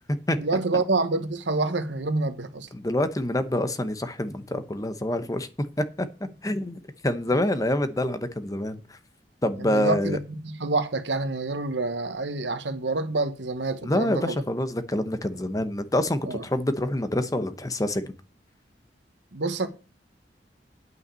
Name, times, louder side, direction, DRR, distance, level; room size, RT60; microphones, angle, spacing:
voice 1, 0.4-2.7 9.6-14.4 16.3-16.4 19.3-19.7, right 3 dB, 85° right, 1.2 m, -27 dB
voice 2, 2.7-5.5 5.8-6.1 6.4-9.0 9.4-10.2 13.8-18.0, left 1 dB, 20° left, 0.9 m, -26 dB
9.4 x 5.7 x 7.5 m
head